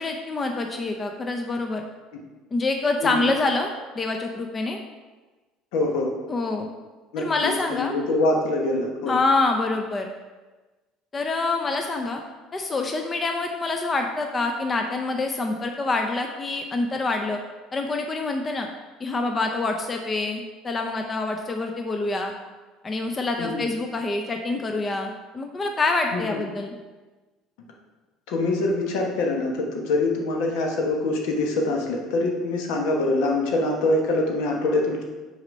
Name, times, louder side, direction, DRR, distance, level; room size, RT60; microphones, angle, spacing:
voice 1, 0.0-1.9 2.5-4.8 6.3-6.7 7.2-7.9 9.1-10.1 11.1-12.2 12.5-17.4 17.7-18.7 19.0-22.3 22.8-26.8, left 3 dB, 30° left, 4 dB, 0.7 m, -26 dB
voice 2, 5.7-6.1 7.1-9.2 23.4-23.6 26.1-26.4 28.3-35.0, left 2 dB, 75° left, 1 dB, 1.3 m, -24 dB
5.9 x 4.2 x 5.3 m, 1.2 s
hypercardioid pair, 75°, 0 cm